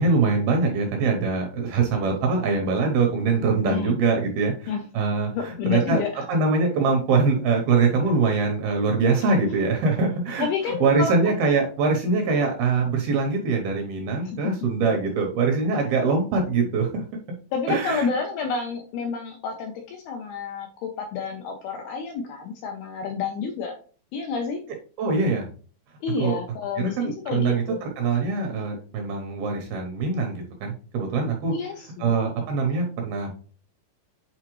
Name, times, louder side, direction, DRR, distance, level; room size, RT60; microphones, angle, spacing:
voice 1, 0.0-6.0 6.3-17.0 17.7-18.1 25.0-25.5 26.2-26.4 26.8-31.5 32.0-33.3, right 4 dB, 75° right, 2 dB, 2.4 m, -23 dB
voice 2, 3.6-4.0 4.7-4.8 5.3-6.3 9.2-9.7 10.4-11.1 14.3-14.6 17.5-23.8 24.1-24.6 26.0-27.8 31.5-32.2, left 5 dB, 80° left, 2 dB, 2.3 m, -30 dB
8.5 x 4.0 x 3.0 m, 0.40 s
omnidirectional pair, 5.2 m